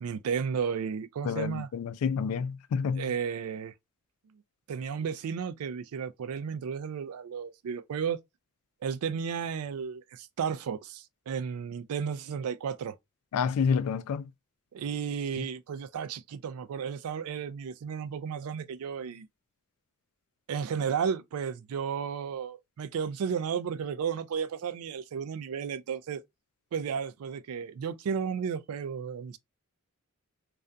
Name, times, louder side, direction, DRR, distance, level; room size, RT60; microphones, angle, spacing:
voice 1, 0.0-1.7 3.0-3.7 4.7-8.2 8.8-12.9 14.7-19.3 20.5-26.2 26.7-29.4, right 7 dB, 75° right, 0.3 m, -33 dB
voice 2, 1.2-3.1 13.3-14.3 15.4-15.5, left 6 dB, 80° left, 0.3 m, -29 dB
2.4 x 2.2 x 2.5 m
head